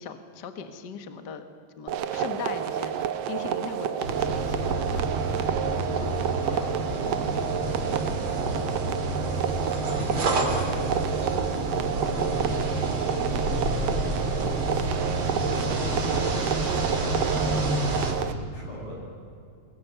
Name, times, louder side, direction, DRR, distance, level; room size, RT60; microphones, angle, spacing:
voice 1, 0.0-1.4 1.8-5.5 5.9-6.7, left 6 dB, 45° left, 9 dB, 1.4 m, -40 dB
sound 1, 1.9-18.3, right 9 dB, 90° right, 1.3 m, -30 dB
sound 2, 4.0-18.1, right 2 dB, 40° right, 3.8 m, -29 dB
voice 2, 5.2-5.6 6.1-6.8 7.1-8.7 9.6-10.8 11.8-14.6 15.2-19.0, left 1 dB, 70° left, -2 dB, 9.4 m, -40 dB
24.0 x 21.5 x 9.4 m, 2.5 s
omnidirectional pair, 4.1 m